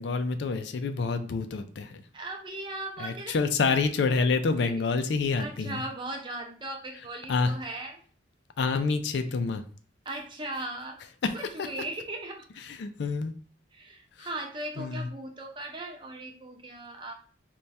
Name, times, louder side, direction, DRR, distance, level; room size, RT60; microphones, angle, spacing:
voice 1, 0.0-2.0 3.0-5.8 7.3-7.5 8.6-9.6 11.2-11.7 12.6-13.3 14.2-14.3 14.8-15.1, left 4 dB, 60° left, 8 dB, 0.3 m, -28 dB
voice 2, 2.1-3.4 5.4-8.0 10.1-11.0 11.3-12.5 13.7-17.1, right 2 dB, 25° right, 2 dB, 0.5 m, -38 dB
3.2 x 2.2 x 4.0 m, 0.42 s
head